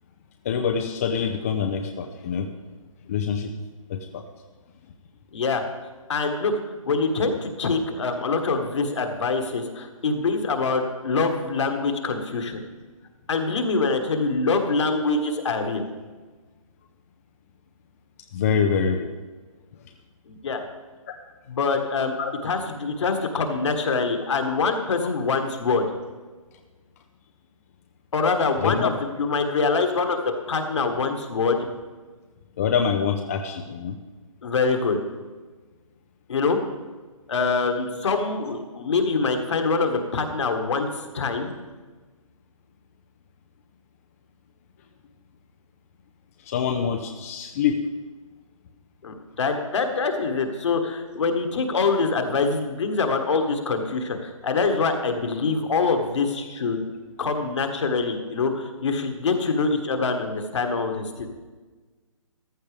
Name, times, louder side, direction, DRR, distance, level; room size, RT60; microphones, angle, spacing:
voice 1, 0.4-2.5 3.1-3.5 3.9-4.2 18.3-19.1 22.2-22.3 28.6-28.9 32.6-34.0 46.4-47.8, left 7 dB, 25° left, 5 dB, 0.5 m, -25 dB
voice 2, 5.3-5.6 6.1-6.5 6.8-12.6 13.3-15.9 20.3-20.6 21.5-22.1 22.4-25.8 28.1-31.7 34.4-35.0 36.3-36.6 37.3-40.9 41.1-41.5 49.0-56.8 57.2-61.3, left 4 dB, 55° left, 5 dB, 1.7 m, -24 dB
14.5 x 12.0 x 3.4 m, 1.3 s
hypercardioid pair, 155°, 18 cm